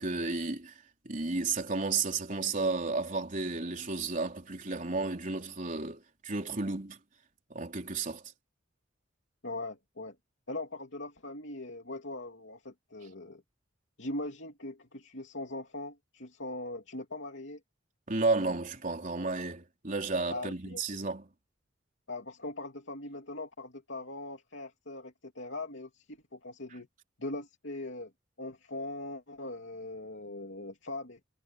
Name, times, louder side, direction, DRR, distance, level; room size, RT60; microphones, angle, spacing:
voice 1, 0.0-7.0 7.5-8.2 18.1-21.3, right 3 dB, 40° right, 3.8 m, -32 dB
voice 2, 9.4-10.2 10.5-13.4 14.0-17.6 20.3-20.8 22.1-26.9 27.2-28.1 28.4-31.2, left 2 dB, 65° left, 3.1 m, -40 dB
head